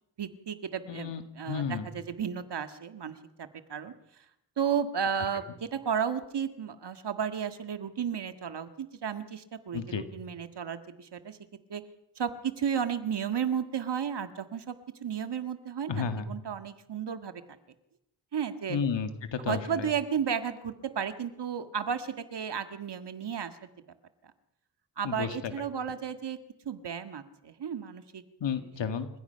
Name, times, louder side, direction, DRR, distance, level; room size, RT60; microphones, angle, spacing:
voice 1, 0.2-3.9 4.6-11.4 11.7-11.8 12.2-14.8 15.0-17.4 18.3-18.8 19.5-23.6 25.0-26.4 26.7-28.2, right 7 dB, 70° right, 9 dB, 1.8 m, -33 dB
voice 2, 0.9-1.9 9.7-10.0 15.9-16.3 18.7-19.9 25.0-25.7 28.4-29.1, left 6 dB, 85° left, 8 dB, 2.1 m, -32 dB
29.0 x 15.5 x 5.7 m, 0.84 s
cardioid pair, 70°, 43 cm